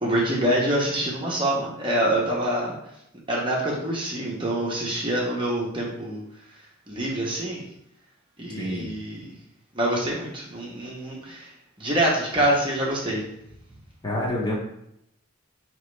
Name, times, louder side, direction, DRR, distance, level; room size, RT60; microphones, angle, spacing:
voice 1, 0.0-2.7 3.3-6.2 6.9-7.6 8.4-9.3 9.7-11.5 11.8-13.2, right 1 dB, 25° right, -4 dB, 0.8 m, -25 dB
voice 2, 8.6-8.9 14.0-14.6, left 1 dB, 20° left, -4 dB, 0.9 m, -27 dB
4.8 x 3.0 x 3.2 m, 0.78 s
head